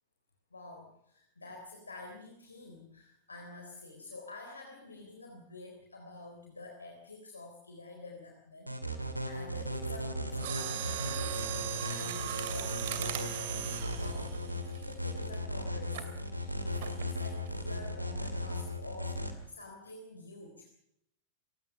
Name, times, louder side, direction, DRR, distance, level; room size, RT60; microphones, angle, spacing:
voice 1, 0.5-13.6 13.8-20.7, left 2 dB, 80° left, 2 dB, 3.7 m, -49 dB
sound 1, 8.7-19.3, equal, 90° right, 2.4 m, -37 dB
Mechanisms, 10.4-15.3 15.9-16.2 16.8-17.1 17.5-17.6, right 10 dB, 55° right, 2.6 m, -38 dB
28.0 x 17.0 x 6.6 m, 0.78 s
figure-of-eight pair, 90°, 0 cm